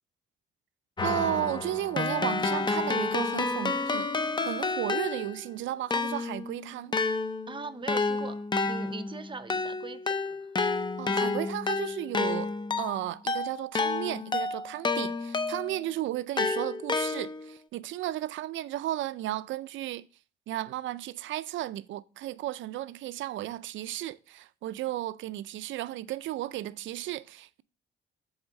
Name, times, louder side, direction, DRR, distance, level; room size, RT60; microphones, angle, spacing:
Keyboard (musical), 1.0-5.5 5.9-15.8 16.4-17.6, left 3 dB, 25° left, 0.5 m, -30 dB
voice 1, 1.0-6.9 11.0-12.5 12.8-20.1 20.5-27.6, right 14 dB, 75° right, 0.4 m, -34 dB
voice 2, 7.5-10.4, right 4 dB, 25° right, 0.7 m, -41 dB
7.2 x 3.5 x 6.3 m
cardioid pair, 90°, 20 cm